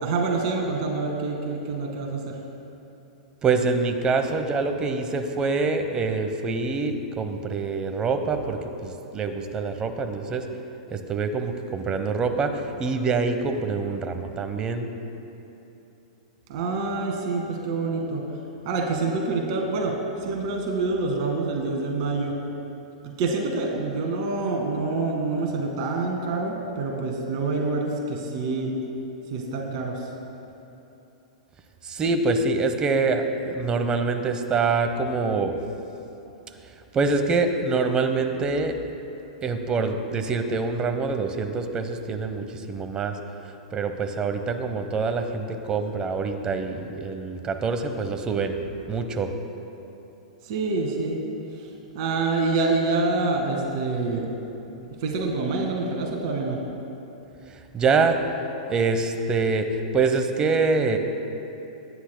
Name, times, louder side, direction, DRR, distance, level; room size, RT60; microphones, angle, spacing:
voice 1, 0.0-2.4 16.5-18.2 18.6-22.3 23.0-28.8 29.3-30.1 50.4-51.2 51.5-54.3 55.0-56.6, right 3 dB, 55° right, 1 dB, 2.0 m, -26 dB
voice 2, 3.4-10.4 10.9-14.9 31.8-35.6 36.9-38.8 39.4-43.2 43.7-48.6 48.9-49.3 57.5-58.2 58.7-61.0, right 4 dB, 25° right, 7 dB, 1.0 m, -25 dB
23.0 x 10.0 x 2.2 m, 2.9 s
hypercardioid pair, 120°, 4 cm